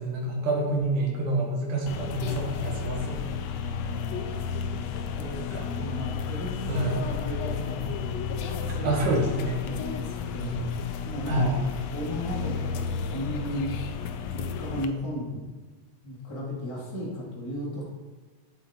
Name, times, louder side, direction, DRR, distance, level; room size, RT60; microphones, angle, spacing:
voice 1, 0.0-3.4 5.4-5.9 6.7-7.1 7.6-8.0 8.6-9.6 10.4-10.7 11.3-11.6, right 2 dB, 90° right, -1 dB, 2.9 m, -28 dB
sound 1, 1.9-14.9, left 6 dB, 90° left, 1.4 m, -32 dB
voice 2, 3.6-4.2 4.7-8.2 8.7-8.9 9.7-10.6 11.0-11.5 11.9-13.7 14.3-15.3 16.0-17.8, equal, 10° left, -6 dB, 1.7 m, -35 dB
8.2 x 7.9 x 2.9 m, 1.4 s
omnidirectional pair, 3.5 m